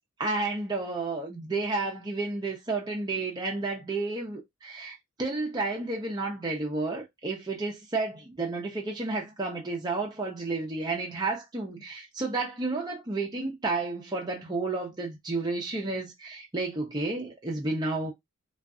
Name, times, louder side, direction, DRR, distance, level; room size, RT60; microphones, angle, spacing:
voice 1, 0.2-18.1, right 3 dB, 20° right, 0.5 m, -31 dB
2.5 x 2.3 x 2.3 m
head